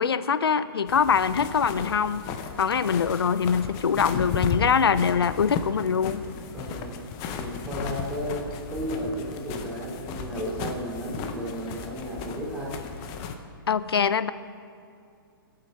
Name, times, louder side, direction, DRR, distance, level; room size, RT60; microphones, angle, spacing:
voice 1, 0.0-2.3 2.6-6.2 13.7-14.3, left 6 dB, 85° left, 15 dB, 0.5 m, -23 dB
sound 1, 0.9-13.4, left 6 dB, 30° left, 0.9 m, -35 dB
voice 2, 6.5-6.9 7.3-12.7, equal, 10° right, -5 dB, 3.4 m, -33 dB
20.5 x 8.7 x 4.5 m, 2.4 s
hypercardioid pair, 140°, 12 cm